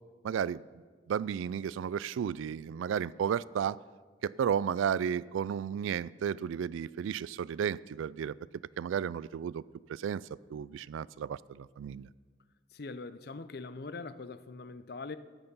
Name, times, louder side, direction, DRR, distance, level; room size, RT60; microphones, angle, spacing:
voice 1, 0.2-0.6 1.1-3.8 4.2-8.4 8.8-9.6 9.9-10.2 10.5-12.1, right 8 dB, 85° right, 22 dB, 0.3 m, -33 dB
voice 2, 12.7-15.2, left 3 dB, 55° left, 13 dB, 0.5 m, -42 dB
13.5 x 9.0 x 5.4 m, 1.5 s
head